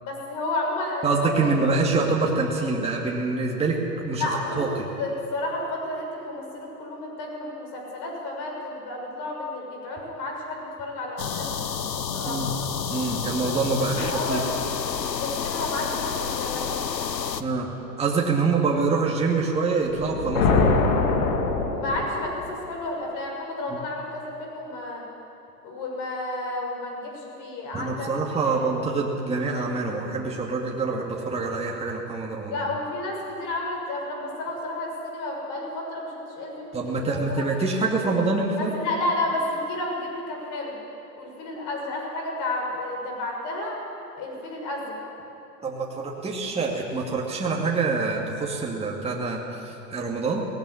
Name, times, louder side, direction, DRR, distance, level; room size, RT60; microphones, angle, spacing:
voice 1, 0.0-1.5 4.2-12.4 13.8-14.4 15.2-16.7 21.7-25.0 25.6-28.1 28.4-28.6 32.5-37.5 38.6-40.8 41.2-43.8 44.1-45.0, left 2 dB, 40° left, 0 dB, 6.6 m, -31 dB
voice 2, 1.0-3.8 4.0-4.7 12.3-12.5 12.9-14.4 17.4-17.7 18.0-20.7 27.7-32.7 36.7-38.7 45.6-50.5, right 3 dB, 10° right, -2 dB, 2.3 m, -25 dB
sound 1, 11.2-17.4, left 7 dB, 90° left, 1.0 m, -29 dB
sound 2, 19.9-22.5, left 4 dB, 60° left, 2.4 m, -23 dB
19.0 x 15.5 x 9.9 m, 2.9 s
figure-of-eight pair, 100°, 49 cm